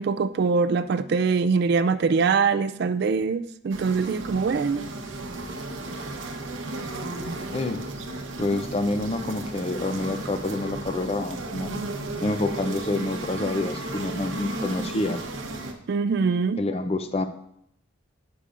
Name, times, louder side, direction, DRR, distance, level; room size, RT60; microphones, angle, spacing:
voice 1, 0.0-4.8 15.9-16.6, right 5 dB, 55° right, 12 dB, 0.3 m, -23 dB
sound 1, 3.7-15.7, right 2 dB, 70° right, 0.9 m, -34 dB
voice 2, 7.5-7.8 8.4-11.7 12.2-15.2 16.6-17.3, left 2 dB, 30° left, 9 dB, 0.5 m, -27 dB
9.6 x 6.8 x 2.5 m, 0.74 s
head